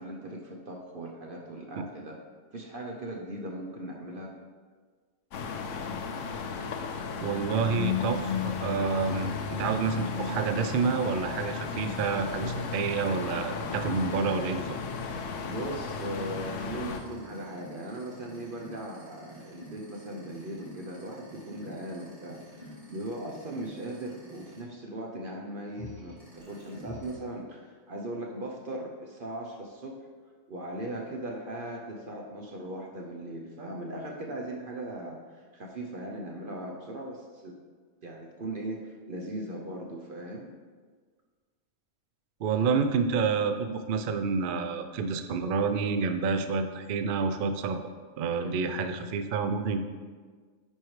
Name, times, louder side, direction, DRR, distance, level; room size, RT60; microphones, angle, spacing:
voice 1, 0.0-2.2 2.5-4.3 15.4-30.1 30.5-37.6 38.0-40.5 48.3-48.6, right 1 dB, 50° right, 0 dB, 0.8 m, -39 dB
sound 1, 5.3-17.0, left 5 dB, 70° left, 0.9 m, -34 dB
voice 2, 7.2-14.8 42.4-47.8 48.2-49.8, right 5 dB, 75° right, 8 dB, 0.4 m, -28 dB
sound 2, 8.9-24.6 25.7-27.2, equal, 25° right, 2.2 m, -49 dB
9.9 x 4.6 x 3.1 m, 1.5 s
omnidirectional pair, 1.5 m